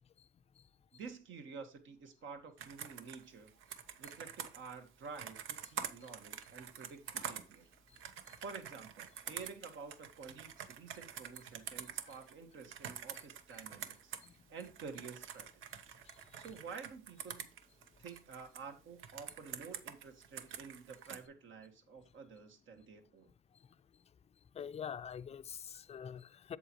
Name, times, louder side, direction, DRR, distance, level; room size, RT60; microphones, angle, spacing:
voice 1, 0.9-3.5 4.0-7.7 8.4-14.1 14.5-15.6 16.4-17.6 18.0-23.3, right 5 dB, 75° right, 1.7 m, -50 dB
Computer keyboard, 2.6-14.3 14.6-18.6 19.0-21.2, right 9 dB, 90° right, 0.9 m, -47 dB
voice 2, 24.5-26.6, left 8 dB, 30° left, 0.4 m, -44 dB
8.1 x 7.4 x 3.0 m
cardioid pair, 90°, 20 cm